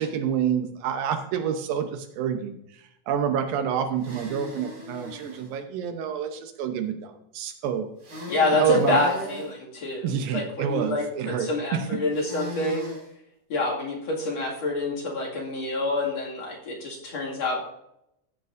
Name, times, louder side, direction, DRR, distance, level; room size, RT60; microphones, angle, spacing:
voice 1, 0.0-7.9 8.5-9.0 10.0-12.0, right 8 dB, 85° right, 7 dB, 2.7 m, -28 dB
sound 1, 4.0-5.5 8.0-9.5 12.1-13.1, left 1 dB, 45° right, 5.2 m, -38 dB
voice 2, 8.3-10.1 10.3-12.9 13.5-17.6, left 2 dB, 50° left, -4 dB, 3.3 m, -27 dB
15.0 x 8.3 x 2.6 m, 0.81 s
omnidirectional pair, 4.0 m